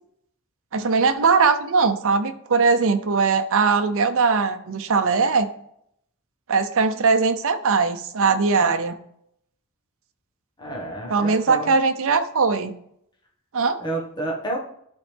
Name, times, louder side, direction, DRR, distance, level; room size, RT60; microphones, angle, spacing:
voice 1, 0.7-5.5 6.5-9.0 11.1-12.7 13.5-13.8, right 4 dB, 65° right, 8 dB, 0.7 m, -20 dB
voice 2, 10.6-11.7 13.8-14.6, right 1 dB, 20° left, -1 dB, 1.5 m, -30 dB
11.5 x 4.1 x 3.5 m, 0.71 s
head